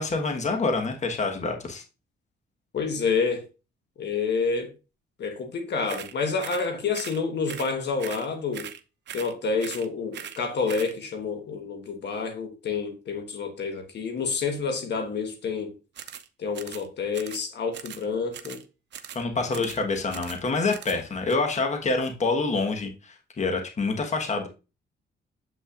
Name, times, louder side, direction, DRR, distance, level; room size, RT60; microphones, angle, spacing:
voice 1, 0.0-1.8 19.1-24.5, left 3 dB, 35° left, 1.3 m, -27 dB
voice 2, 2.7-3.4 4.0-4.7 5.2-8.7 9.1-15.7 16.4-18.6 19.5-19.6, left 5 dB, 60° left, 1.4 m, -28 dB
sound 1, 5.9-6.1 6.4-6.7 6.9-7.2 7.5-7.7 8.0-8.3 8.5-8.8 9.1-9.3 9.6-9.9 10.1-10.4 10.7-10.9 15.9-16.3 16.5-16.9 17.1-17.4 17.7-18.0 18.3-18.6 18.9-19.2 19.5-19.8 20.1-20.4 20.7-21.0 21.3-21.4, right 10 dB, 60° right, 0.7 m, -40 dB
7.8 x 5.7 x 2.5 m
cardioid pair, 90°, 20 cm